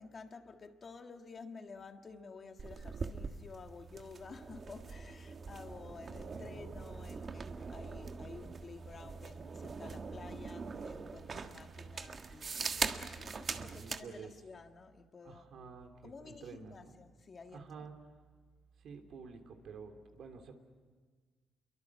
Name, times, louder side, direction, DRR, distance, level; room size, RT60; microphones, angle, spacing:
voice 1, 0.0-15.5 16.0-17.9, left 4 dB, 40° left, 1.7 m, -52 dB
sound 1, 2.6-14.1, right 5 dB, 45° right, 1.6 m, -42 dB
voice 2, 6.3-6.6 13.4-14.3 15.2-16.9 17.5-18.2 18.8-20.5, right 5 dB, 70° right, 3.2 m, -50 dB
28.0 x 23.0 x 7.4 m
cardioid pair, 90°, 0 cm